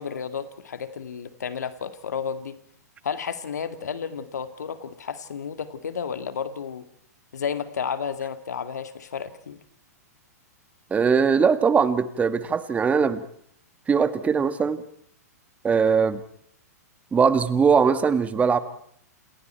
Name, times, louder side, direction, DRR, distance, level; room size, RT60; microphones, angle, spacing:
voice 1, 0.0-2.6 3.0-6.9 7.3-9.6, left 7 dB, 85° left, 9 dB, 2.2 m, -32 dB
voice 2, 10.9-13.2 13.9-14.8 15.6-16.2 17.1-18.6, right 6 dB, 15° right, 11 dB, 1.6 m, -20 dB
28.5 x 28.5 x 4.6 m, 0.67 s
hypercardioid pair, 120°, 9 cm